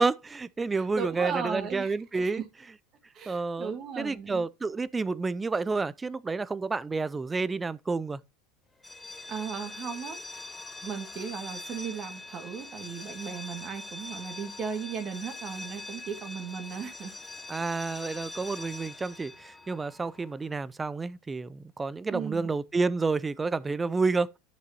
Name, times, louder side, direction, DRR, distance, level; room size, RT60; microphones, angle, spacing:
voice 1, 0.0-2.4 3.3-8.2 17.5-24.3, right 4 dB, 15° right, 0.5 m, -30 dB
voice 2, 0.7-2.4 3.1-4.5 9.3-10.5 10.8-17.1 17.6-17.7 22.1-22.5, right 6 dB, 40° right, 2.1 m, -37 dB
sound 1, 8.8-20.5, left 2 dB, 10° left, 1.3 m, -43 dB
11.0 x 6.6 x 2.9 m
hypercardioid pair, 85°, 0 cm